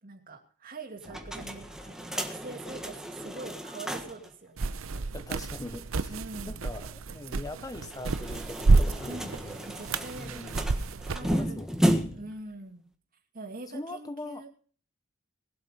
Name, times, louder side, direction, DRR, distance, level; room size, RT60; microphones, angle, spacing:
voice 1, 0.0-4.8 6.1-6.6 9.1-9.4 9.7-10.6 11.1-11.6 12.0-12.9 13.3-14.5, right 2 dB, 40° right, 4 dB, 2.5 m, -43 dB
sound 1, 1.0-4.3 4.6-4.7 4.9-5.0 7.8-12.4, equal, 5° right, 1.5 m, -33 dB
sound 2, 4.6-11.3, right 3 dB, 75° right, 0.7 m, -29 dB
voice 2, 5.1-6.2 6.4-9.7 10.2-10.7 11.2-12.0 13.7-14.4, left 2 dB, 15° left, 10 dB, 0.7 m, -41 dB
19.5 x 8.2 x 5.3 m, 0.43 s
head